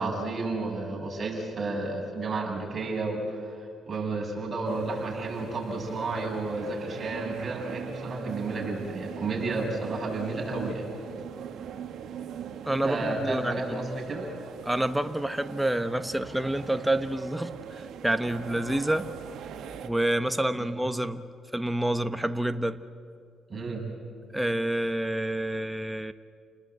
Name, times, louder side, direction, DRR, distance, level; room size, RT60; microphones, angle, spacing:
voice 1, 0.0-3.6 3.9-10.8 12.8-14.2 20.6-20.7 23.5-23.8, right 3 dB, 35° right, 0 dB, 7.0 m, -32 dB
sound 1, 4.6-19.9, right 8 dB, 75° right, 1.6 m, -41 dB
voice 2, 12.6-13.9 14.6-19.1 19.8-22.8 24.3-26.1, right 1 dB, 5° right, 9 dB, 1.0 m, -28 dB
29.5 x 20.0 x 8.1 m, 2.2 s
cardioid pair, 90°, 0 cm